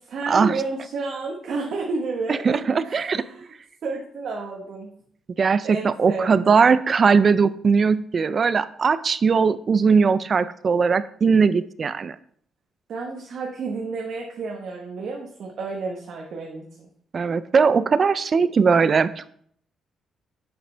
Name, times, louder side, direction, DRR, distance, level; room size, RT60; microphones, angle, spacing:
voice 1, 0.1-3.5 3.8-4.9 5.6-6.7 12.9-16.9, right 3 dB, 60° right, -1 dB, 1.2 m, -31 dB
voice 2, 2.3-3.2 5.4-12.2 17.1-19.3, right 5 dB, 45° right, 15 dB, 0.4 m, -19 dB
7.7 x 6.9 x 3.3 m, 0.63 s
cardioid pair, 90°, 0 cm